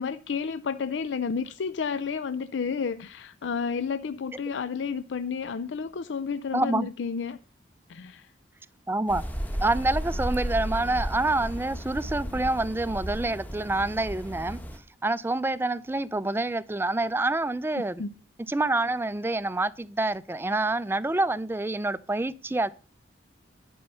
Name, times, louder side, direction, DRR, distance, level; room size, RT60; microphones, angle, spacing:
voice 1, 0.0-7.4 7.9-8.3 17.8-18.1, left 5 dB, 75° left, 0.4 m, -31 dB
voice 2, 6.5-6.9 8.9-9.2 9.6-14.6 15.0-18.0 18.5-22.7, right 2 dB, 10° right, 0.4 m, -27 dB
sound 1, 9.1-14.8, equal, 10° left, 1.1 m, -34 dB
11.0 x 5.4 x 6.8 m
head